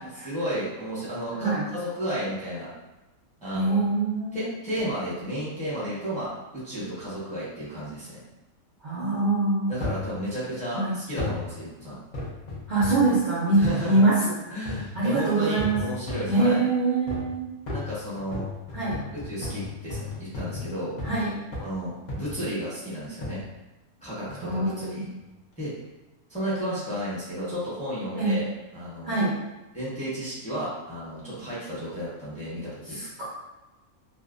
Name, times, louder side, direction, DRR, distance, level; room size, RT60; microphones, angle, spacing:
voice 1, 0.2-2.7 3.4-3.8 4.3-8.2 9.7-12.0 13.6-14.0 14.5-16.6 17.7-18.5 19.2-20.9 21.6-23.4 24.0-25.1 25.6-25.7 26.3-28.5 28.7-29.3 29.7-33.0, equal, 10° left, -9 dB, 0.5 m, -33 dB
voice 2, 3.5-4.5 8.8-9.8 10.7-11.0 12.7-14.4 14.9-15.8 16.3-17.5 18.7-19.0 21.0-21.3 24.4-25.2 26.7-26.8 28.1-28.4 29.0-29.4 32.9-33.3, right 2 dB, 80° right, -8 dB, 0.4 m, -24 dB
sound 1, 9.8-10.1 11.2-11.5 12.1-13.1 13.6-13.9 14.7-15.0 15.6-16.4 17.1-17.4 17.7-21.2 21.5-21.8 22.1-22.5 23.2-23.4 24.3-24.6 25.2-25.3, left 3 dB, 70° left, 0.4 m, -34 dB
2.5 x 2.0 x 2.4 m, 1.1 s
omnidirectional pair, 1.5 m